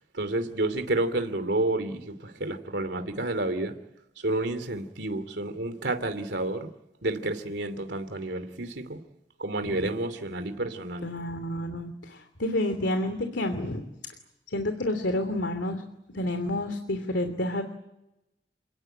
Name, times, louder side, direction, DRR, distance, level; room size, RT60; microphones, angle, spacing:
voice 1, 0.1-3.7 4.2-6.7 7.0-9.0 9.4-11.1, right 2 dB, 80° right, 2.9 m, -30 dB
voice 2, 11.0-13.8 14.5-15.8 16.1-17.6, left 1 dB, 90° left, 2.9 m, -29 dB
29.0 x 19.5 x 9.2 m
head